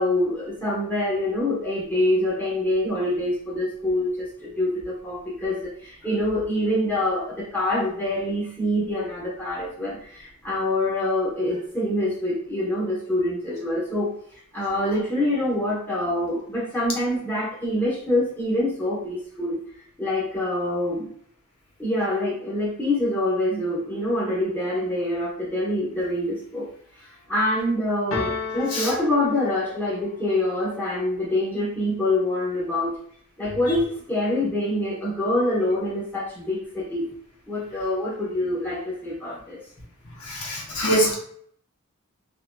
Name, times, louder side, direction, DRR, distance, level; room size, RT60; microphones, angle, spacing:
voice 1, 0.0-14.1 14.5-19.6 20.0-21.1 21.8-26.7 27.3-33.0 33.4-37.1 37.5-39.6, left 1 dB, 10° left, -7 dB, 0.9 m, -25 dB
sound 1, 28.1-30.0, left 4 dB, 70° left, 0.7 m, -32 dB
voice 2, 40.2-41.2, right 1 dB, 90° left, -3 dB, 0.9 m, -23 dB
2.7 x 2.6 x 2.2 m, 0.62 s
head